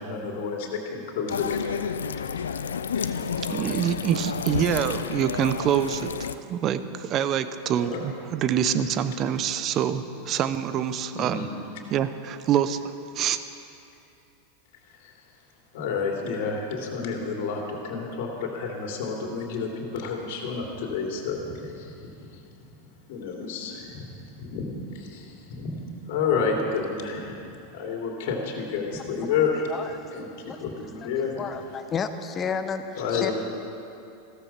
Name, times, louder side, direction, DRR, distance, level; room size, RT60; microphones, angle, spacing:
voice 1, 0.0-1.6 2.9-3.1 7.8-8.0 11.1-11.5 15.0-15.1 15.7-21.9 22.3-22.4 23.1-24.1 24.4-27.4 27.7-29.7 30.1-31.3 33.0-33.3, left 5 dB, 65° left, 0 dB, 2.8 m, -30 dB
sound 1, 1.3-6.4, left 7 dB, 85° left, 0.5 m, -30 dB
voice 2, 3.5-11.5 11.9-13.4, right 9 dB, 40° right, 12 dB, 0.8 m, -26 dB
voice 3, 29.7-30.0 30.5-30.6 31.4-33.3, left 6 dB, 30° left, 8 dB, 1.1 m, -31 dB
15.5 x 13.5 x 6.0 m, 2.7 s
hypercardioid pair, 95°, 0 cm